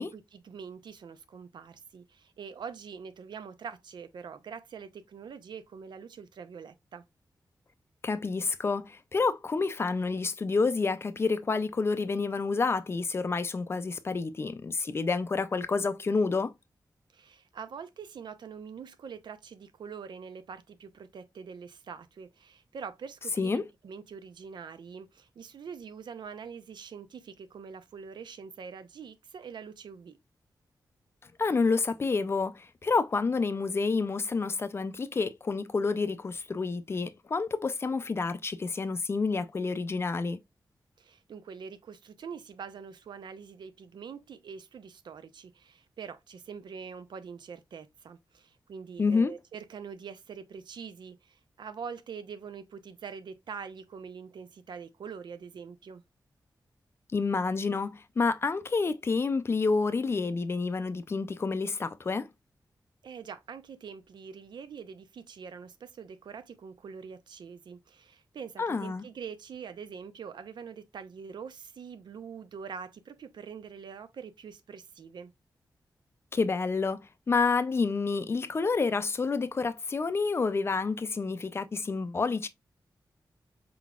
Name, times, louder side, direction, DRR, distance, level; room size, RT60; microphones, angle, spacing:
voice 1, 0.0-7.0 17.1-30.2 41.0-56.0 63.0-75.3, right 6 dB, 80° right, 0.6 m, -44 dB
voice 2, 8.0-16.5 23.4-23.7 31.4-40.4 49.0-49.3 57.1-62.3 68.6-69.0 76.3-82.5, left 4 dB, 35° left, 0.4 m, -29 dB
4.5 x 3.9 x 2.3 m
wide cardioid pair, 175°, 8 cm